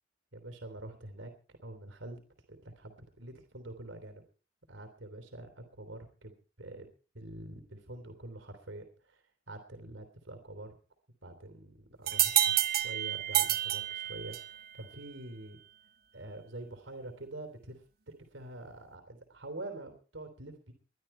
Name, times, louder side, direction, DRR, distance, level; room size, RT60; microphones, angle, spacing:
voice 1, 0.3-2.2 2.5-4.2 4.7-6.3 6.6-6.9 7.1-10.7 11.2-15.6 16.1-20.7, right 1 dB, 85° right, 6 dB, 3.3 m, -46 dB
sound 1, 12.1-14.6, right 12 dB, 50° right, 1.3 m, -29 dB
21.5 x 12.0 x 4.4 m, 0.37 s
head